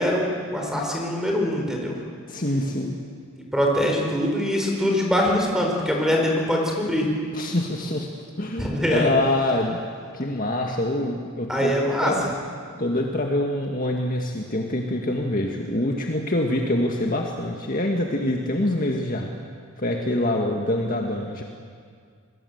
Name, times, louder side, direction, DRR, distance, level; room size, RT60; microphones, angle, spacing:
voice 1, 0.0-2.0 3.5-7.1 8.6-9.1 11.5-12.1, equal, 5° right, 0 dB, 4.5 m, -23 dB
voice 2, 2.3-3.0 7.3-8.1 8.4-9.8 10.1-11.7 12.0-12.3 12.8-19.3 19.8-21.4, left 1 dB, 40° left, 1 dB, 1.9 m, -25 dB
29.0 x 21.5 x 8.0 m, 2.1 s
head